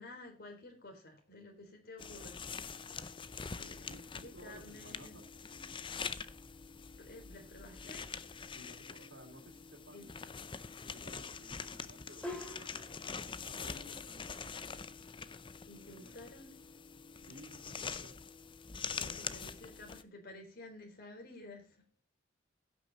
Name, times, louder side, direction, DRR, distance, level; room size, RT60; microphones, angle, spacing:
voice 1, 0.0-5.2 7.0-8.6 9.9-10.0 15.7-16.6 18.9-22.0, left 2 dB, 55° left, 3.8 m, -53 dB
sound 1, 2.0-20.0, left 5 dB, 25° left, 0.6 m, -45 dB
voice 2, 3.8-5.8 8.5-10.1 10.7-12.3 12.6-14.9 16.0-16.1 17.2-18.2, equal, 75° right, 3.1 m, -56 dB
sound 2, 7.6-8.3 12.2-13.2, left 1 dB, 5° left, 2.5 m, -46 dB
16.5 x 6.3 x 4.0 m
head